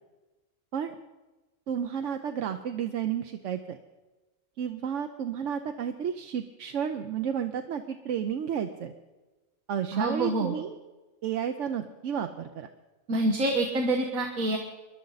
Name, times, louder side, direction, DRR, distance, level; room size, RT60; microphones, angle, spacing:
voice 1, 1.7-3.8 4.6-8.9 9.7-10.8 11.2-12.7, right 8 dB, 65° right, 6 dB, 1.0 m, -32 dB
voice 2, 9.9-10.5 13.1-14.6, right 2 dB, 90° right, 2 dB, 1.7 m, -26 dB
21.5 x 11.5 x 4.0 m, 1.2 s
omnidirectional pair, 1.4 m